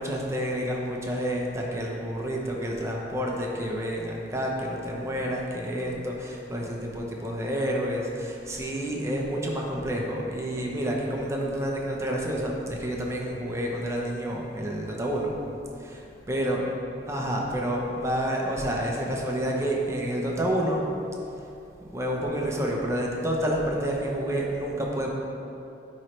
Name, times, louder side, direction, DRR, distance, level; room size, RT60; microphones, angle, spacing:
voice 1, 0.0-15.3 15.8-16.6 17.1-20.8 21.9-25.1, equal, 15° right, -2 dB, 0.8 m, -29 dB
9.1 x 3.2 x 4.4 m, 2.7 s
head